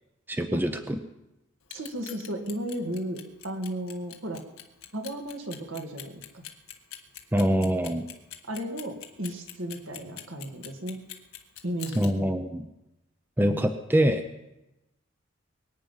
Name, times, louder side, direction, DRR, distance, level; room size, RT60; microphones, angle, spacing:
voice 1, 0.3-1.0 7.3-8.1 12.0-12.7 13.4-14.2, equal, 10° right, 7 dB, 0.6 m, -24 dB
Clock, 1.6-12.1, left 12 dB, 85° left, 1.5 m, -43 dB
voice 2, 1.7-4.4 4.9-6.4 8.5-11.0 11.6-12.3 13.4-13.7, right 1 dB, 70° right, 4 dB, 2.1 m, -34 dB
23.0 x 9.2 x 5.6 m, 0.95 s
head